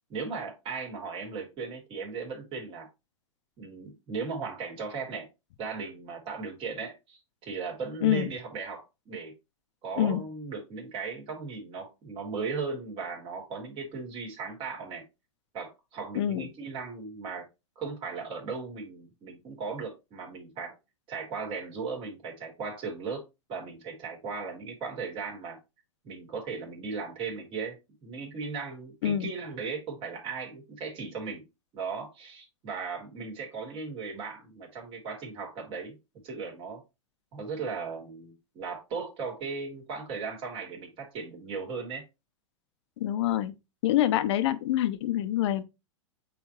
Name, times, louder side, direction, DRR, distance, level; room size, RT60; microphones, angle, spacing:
voice 1, 0.1-2.9 3.6-5.3 5.6-9.3 9.8-15.0 15.5-17.5 17.8-20.8 21.1-23.2 23.5-25.6 26.0-31.5 31.7-36.0 36.2-36.8 37.3-42.0, right 4 dB, 35° right, 3.4 m, -37 dB
voice 2, 16.2-16.5 29.0-29.3 43.0-43.5 43.8-45.7, left 12 dB, 65° left, 0.8 m, -26 dB
8.8 x 3.5 x 3.1 m
hypercardioid pair, 125°, 16 cm